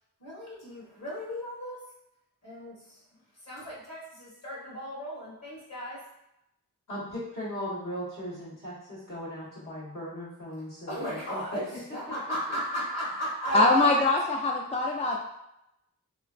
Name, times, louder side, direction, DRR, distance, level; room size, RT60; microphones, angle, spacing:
voice 1, 0.2-1.9 2.4-6.1 10.9-14.0, equal, 50° left, -6 dB, 1.4 m, -35 dB
voice 2, 6.9-11.4, equal, 70° left, -9 dB, 1.4 m, -38 dB
voice 3, 13.5-15.2, left 2 dB, 20° left, 0 dB, 0.3 m, -23 dB
3.0 x 2.5 x 2.4 m, 0.84 s
cardioid pair, 60°, 33 cm